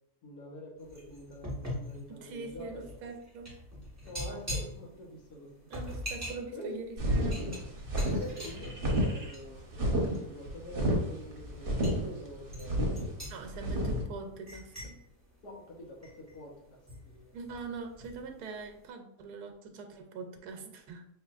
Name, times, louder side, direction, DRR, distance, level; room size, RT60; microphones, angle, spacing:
voice 1, 0.2-2.8 4.1-5.7 6.5-6.8 8.0-12.8 15.4-16.8 17.0-17.4, left 1 dB, 80° left, 0 dB, 1.5 m, -46 dB
sound 1, 0.8-9.6 10.0-10.3 10.9-11.1 11.4-12.0 12.5-16.4 16.9-18.3 18.5-18.7, left 1 dB, 10° right, 1.1 m, -42 dB
voice 2, 2.1-3.6 5.7-7.5 13.3-15.0 17.3-21.1, right 4 dB, 90° right, 5 dB, 1.1 m, -43 dB
sound 2, 7.0-14.0, equal, 45° right, 0.8 m, -30 dB
5.4 x 3.1 x 2.4 m, 0.77 s
omnidirectional pair, 1.7 m